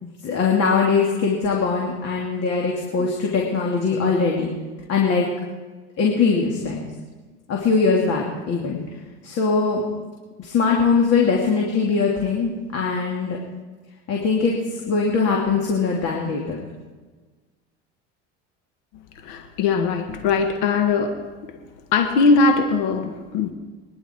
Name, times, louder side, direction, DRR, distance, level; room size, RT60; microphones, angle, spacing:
voice 1, 0.0-4.5 4.9-5.3 6.0-6.9 7.5-8.8 9.2-9.8 10.4-13.4 14.1-16.6, left 5 dB, 50° left, -1 dB, 2.9 m, -21 dB
voice 2, 19.2-21.1 21.9-23.5, left 4 dB, 75° left, 5 dB, 1.7 m, -20 dB
24.5 x 11.0 x 4.6 m, 1.3 s
supercardioid pair, 100°, 33 cm